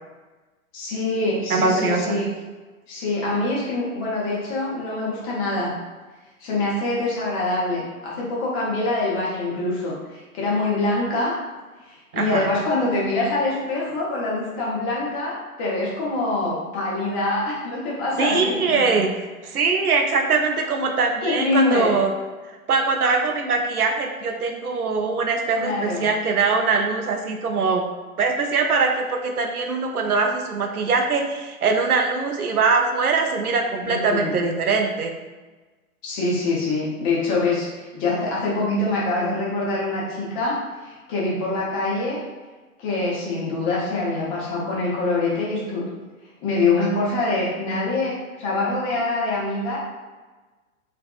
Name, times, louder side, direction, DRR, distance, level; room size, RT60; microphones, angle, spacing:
voice 1, 0.7-2.3 2.9-5.7 6.4-11.3 11.9-18.8 21.2-21.9 25.6-26.0 33.8-34.3 36.0-40.6 40.8-42.2 42.8-45.8 46.4-49.8, left 2 dB, 25° left, -5 dB, 0.7 m, -24 dB
voice 2, 1.5-2.2 12.1-12.5 18.2-22.1 22.7-27.8 28.2-35.1, right 4 dB, 90° right, 3 dB, 0.5 m, -22 dB
2.5 x 2.4 x 2.3 m, 1.3 s
figure-of-eight pair, 115°, 43 cm